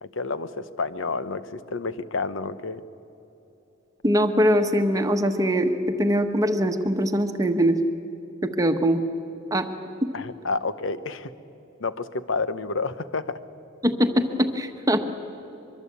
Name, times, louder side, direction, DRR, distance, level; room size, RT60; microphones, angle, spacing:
voice 1, 0.0-2.8 10.1-11.3 11.8-13.4, left 3 dB, 65° left, 13 dB, 0.9 m, -29 dB
voice 2, 4.0-7.8 8.4-9.0 9.5-9.7 13.8-15.0, equal, 15° right, 7 dB, 1.2 m, -22 dB
23.5 x 23.5 x 8.4 m, 3.0 s
head